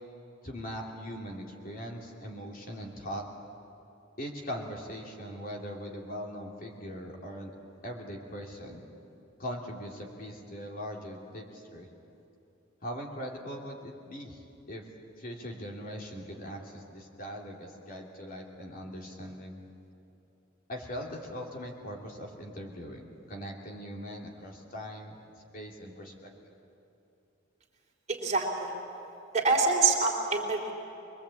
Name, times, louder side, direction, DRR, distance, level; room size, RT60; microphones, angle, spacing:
voice 1, 0.4-3.3 4.2-7.5 7.8-8.8 9.4-11.9 12.8-14.8 15.2-19.6 20.7-25.2 25.5-26.1 26.4-26.6, equal, 45° left, 0 dB, 3.0 m, -40 dB
voice 2, 28.1-28.7 29.3-30.7, right 4 dB, 35° right, -1 dB, 3.2 m, -26 dB
23.5 x 22.0 x 8.6 m, 2.9 s
head